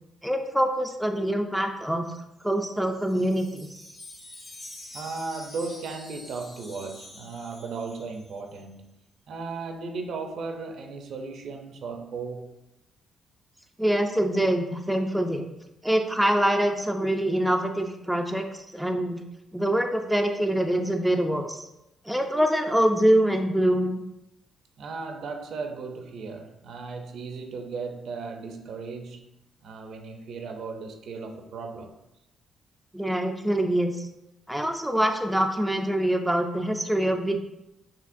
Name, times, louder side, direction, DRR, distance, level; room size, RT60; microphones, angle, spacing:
voice 1, 0.2-2.1 2.4-3.7 13.8-15.5 15.8-19.2 19.5-21.7 22.1-24.0 32.9-34.1 34.5-37.4, right 1 dB, 5° right, 3 dB, 0.4 m, -24 dB
Wind chime, 2.4-8.6, left 1 dB, 30° left, 1.2 m, -47 dB
voice 2, 4.9-8.9 9.3-12.5 24.8-29.2 29.6-31.9, right 4 dB, 70° right, 5 dB, 0.6 m, -36 dB
5.6 x 2.8 x 2.6 m, 0.89 s
cardioid pair, 90°, 0 cm